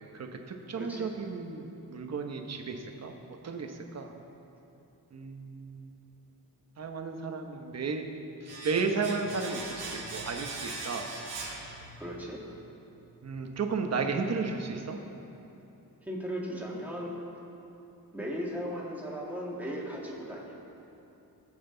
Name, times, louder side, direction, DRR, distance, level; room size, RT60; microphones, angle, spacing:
voice 1, 0.1-3.1 3.4-4.1 5.1-5.8 6.8-8.0 8.4-11.1 13.2-15.0, right 4 dB, 45° right, 4 dB, 1.0 m, -33 dB
voice 2, 0.8-1.1 12.0-12.4 16.0-17.2 18.1-20.6, equal, 5° right, -5 dB, 2.0 m, -37 dB
Domestic sounds home sounds, 8.5-12.3 12.5-12.7, right 3 dB, 90° right, 2.6 m, -40 dB
19.0 x 7.8 x 3.9 m, 2.9 s
wide cardioid pair, 175°, 38 cm